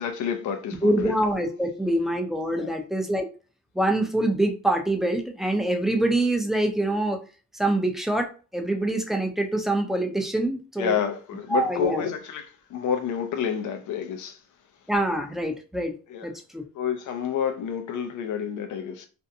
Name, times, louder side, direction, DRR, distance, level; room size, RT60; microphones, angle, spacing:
voice 1, 0.0-1.1 2.5-2.7 10.8-14.4 16.1-16.3 16.8-19.1, left 8 dB, 75° left, 0.6 m, -29 dB
voice 2, 0.8-3.2 3.7-7.2 7.5-11.0 11.5-12.1 14.9-16.0 16.2-16.6, right 1 dB, ahead, 0.5 m, -25 dB
2.6 x 2.1 x 2.6 m
cardioid pair, 90°, 30 cm